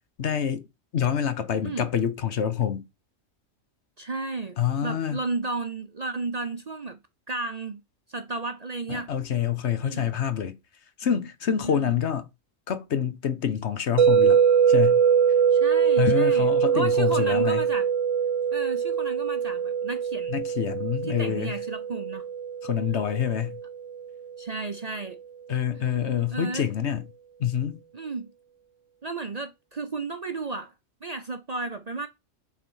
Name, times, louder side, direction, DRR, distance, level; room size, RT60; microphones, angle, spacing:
voice 1, 0.2-0.6 0.9-2.8 4.6-5.2 8.9-10.6 11.0-12.3 12.7-14.4 14.7-15.0 16.0-17.6 20.3-21.6 22.6-23.6 25.5-27.0 27.4-27.8, left 8 dB, 60° left, 1.1 m, -26 dB
voice 2, 4.0-7.0 7.3-7.8 8.1-9.1 9.8-10.2 11.6-11.9 15.5-17.9 18.5-20.4 21.0-22.3 24.4-25.2 25.8-25.9 26.3-26.7 27.9-28.3 29.0-30.7 31.0-32.1, right 3 dB, 40° right, 0.7 m, -33 dB
sound 1, 14.0-24.1, right 7 dB, 75° right, 1.2 m, -23 dB
8.5 x 4.1 x 6.3 m
omnidirectional pair, 1.3 m